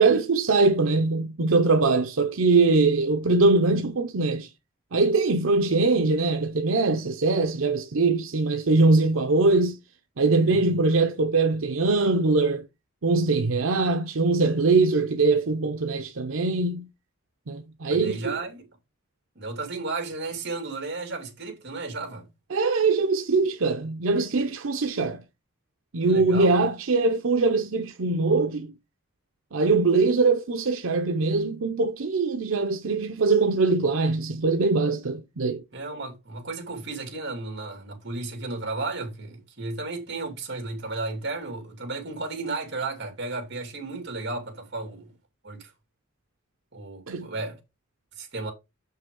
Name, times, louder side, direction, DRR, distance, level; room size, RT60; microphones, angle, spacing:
voice 1, 0.0-4.5 4.9-9.8 10.2-12.7 13.0-16.9 17.5-18.4 22.5-25.2 25.9-28.7 29.5-35.6 47.1-47.3, right 3 dB, 90° right, 0.7 m, -22 dB
voice 2, 17.9-18.7 19.3-22.3 26.0-26.5 35.7-45.1 45.4-45.7 46.7-47.6 48.2-48.5, right 3 dB, 60° right, 2.7 m, -34 dB
6.9 x 5.6 x 3.7 m
head